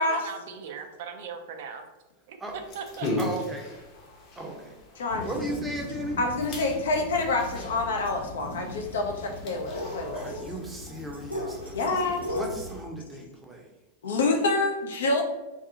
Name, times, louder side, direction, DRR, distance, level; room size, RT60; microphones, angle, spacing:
voice 1, 0.0-1.8 2.3-2.4 2.7-3.1, right 6 dB, 55° right, 5 dB, 0.4 m, -38 dB
sound 1, 2.5-12.8, left 2 dB, 35° left, 0.8 m, -40 dB
voice 2, 3.2-3.6 4.4-4.7 5.2-6.2 10.1-12.0 12.3-13.7, right 1 dB, 10° right, 1 dB, 0.6 m, -36 dB
voice 3, 5.0-5.3 6.2-10.3 11.7-12.4 14.0-15.2, left 3 dB, 65° left, 4 dB, 0.5 m, -27 dB
sound 2, 5.1-12.7, left 1 dB, 90° left, 1.0 m, -38 dB
2.7 x 2.4 x 3.6 m, 1.1 s
figure-of-eight pair, 90°, 0 cm